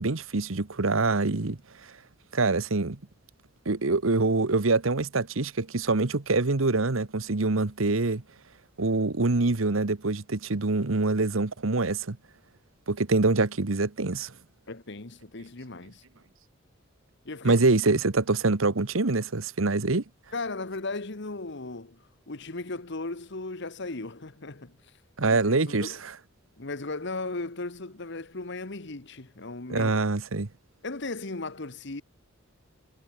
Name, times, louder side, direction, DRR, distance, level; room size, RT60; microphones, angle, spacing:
voice 1, 0.0-1.9 2.3-3.0 3.6-8.2 8.8-12.2 12.9-14.3 17.4-20.0 25.2-26.2 29.7-30.5, right 3 dB, 80° right, 1.2 m, -25 dB
voice 2, 14.7-16.0 17.2-17.6 20.3-24.8 25.3-26.0 26.6-29.9 30.8-32.0, left 3 dB, 60° left, 1.5 m, -36 dB
head